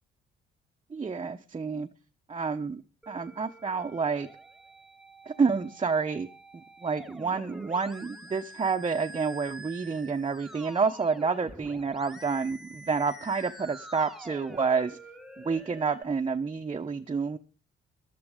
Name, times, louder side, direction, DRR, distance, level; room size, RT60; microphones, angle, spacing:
voice 1, 0.9-1.9 2.3-4.3 5.3-6.3 6.5-15.0 15.4-17.4, right 5 dB, 25° right, 0.9 m, -29 dB
Musical instrument, 3.0-16.0, right 1 dB, ahead, 1.2 m, -47 dB
14.5 x 12.0 x 5.1 m
cardioid pair, 90°, 20 cm